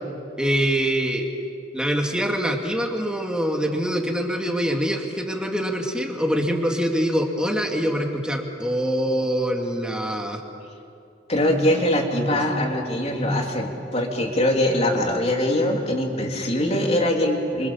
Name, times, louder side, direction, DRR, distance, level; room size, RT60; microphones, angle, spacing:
voice 1, 0.4-1.3 1.7-10.4, equal, 5° right, 1 dB, 2.6 m, -24 dB
voice 2, 11.3-17.7, left 1 dB, 35° left, 1 dB, 3.4 m, -22 dB
29.0 x 26.0 x 7.3 m, 2.6 s
head